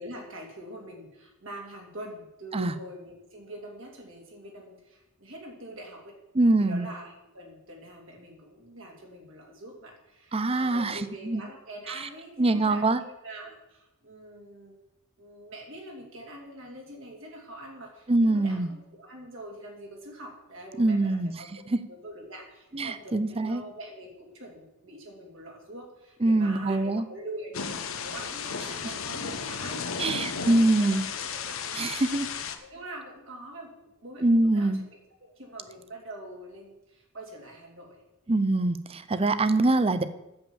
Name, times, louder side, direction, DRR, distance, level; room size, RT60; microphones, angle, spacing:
voice 1, 0.0-6.2 6.6-14.7 15.2-21.5 21.9-31.9 32.6-34.9 35.2-38.0, right 1 dB, 65° right, 0 dB, 2.8 m, -44 dB
voice 2, 6.4-6.9 10.3-11.0 11.3-11.4 12.4-13.0 18.1-18.7 20.8-21.3 21.7-21.8 22.7-23.6 26.2-27.0 30.0-31.0 31.7-32.3 34.2-34.8 38.3-40.0, right 2 dB, 30° right, 13 dB, 0.6 m, -24 dB
Thunder / Rain, 27.5-32.6, left 6 dB, 80° left, 1.0 m, -34 dB
8.8 x 7.3 x 7.2 m, 0.92 s
head